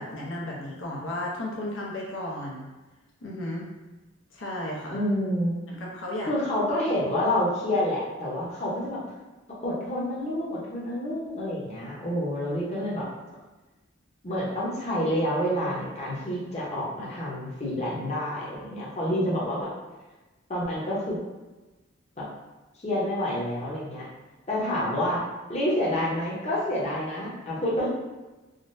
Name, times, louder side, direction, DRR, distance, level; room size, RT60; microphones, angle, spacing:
voice 1, 0.0-2.7 3.2-3.7 4.3-5.0 5.7-6.3 24.6-24.7, left 1 dB, 90° left, -3 dB, 0.7 m, -34 dB
voice 2, 4.9-5.6 6.2-9.0 9.6-13.1 14.2-19.7 20.5-21.2 22.2-22.3 22.8-24.1 24.5-25.2 25.5-27.9, left 1 dB, 35° left, -6 dB, 0.7 m, -28 dB
3.6 x 2.1 x 2.5 m, 1.1 s
head